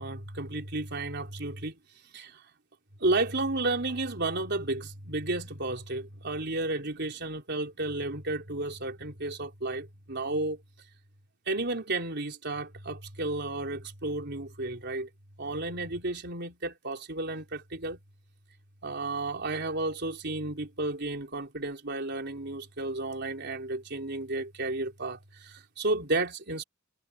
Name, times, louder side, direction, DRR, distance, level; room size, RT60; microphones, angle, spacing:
voice 1, 0.0-1.8 2.1-2.4 3.0-10.6 11.5-15.1 15.4-18.0 18.8-26.6, right 2 dB, 55° right, 4.2 m, -32 dB
head